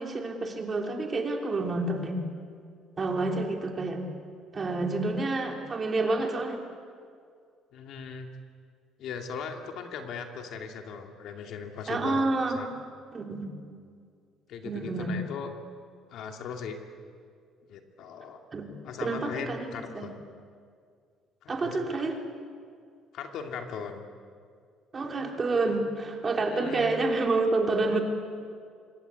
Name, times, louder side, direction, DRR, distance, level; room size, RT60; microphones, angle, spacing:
voice 1, 0.0-2.2 3.0-4.0 4.5-6.6 11.9-12.6 13.1-13.5 14.6-15.2 18.5-18.7 19.0-20.1 21.5-22.2 24.9-28.0, right 3 dB, 25° right, 3 dB, 3.1 m, -28 dB
voice 2, 7.7-8.3 9.0-12.3 12.5-12.7 14.5-15.5 16.1-16.8 17.7-18.4 18.8-20.1 21.4-22.0 23.1-24.1 26.4-27.0, left 6 dB, 60° left, 4 dB, 2.6 m, -38 dB
26.5 x 22.0 x 8.4 m, 2.2 s
cardioid pair, 145°, 0 cm